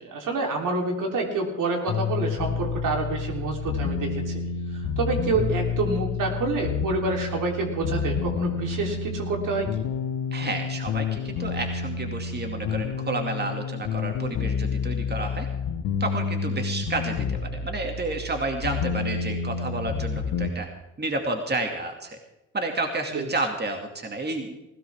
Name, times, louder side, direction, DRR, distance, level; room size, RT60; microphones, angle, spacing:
voice 1, 0.1-4.4 4.7-9.7 23.1-23.3, right 3 dB, 70° right, 1 dB, 3.6 m, -27 dB
sound 1, 1.9-20.5, left 5 dB, 85° left, 1.4 m, -29 dB
voice 2, 10.3-15.5 16.0-20.7 21.0-22.2 22.5-24.6, right 2 dB, 30° right, 3 dB, 2.4 m, -30 dB
19.5 x 16.0 x 3.6 m, 0.93 s
supercardioid pair, 65°, 33 cm